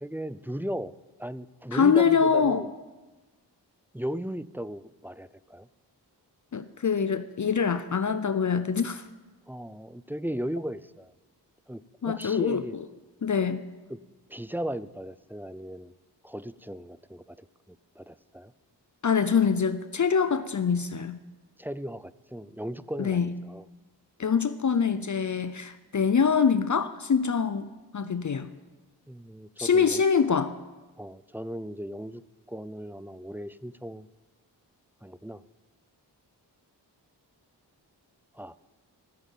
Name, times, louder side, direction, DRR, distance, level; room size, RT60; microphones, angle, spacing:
voice 1, 0.0-0.9 1.2-2.7 3.9-5.7 9.5-11.1 11.7-12.8 13.9-14.0 14.3-15.9 16.2-18.5 21.6-23.6 29.1-30.0 31.0-32.2 32.5-34.1 35.0-35.4 38.3-38.6, equal, 5° right, 16 dB, 0.5 m, -37 dB
voice 2, 1.7-2.6 6.5-9.0 12.0-12.9 13.2-13.6 19.0-21.2 23.0-23.3 24.2-28.5 29.6-30.5, left 6 dB, 45° left, 12 dB, 0.7 m, -24 dB
13.5 x 7.1 x 9.2 m, 1.2 s
cardioid pair, 40°, 43 cm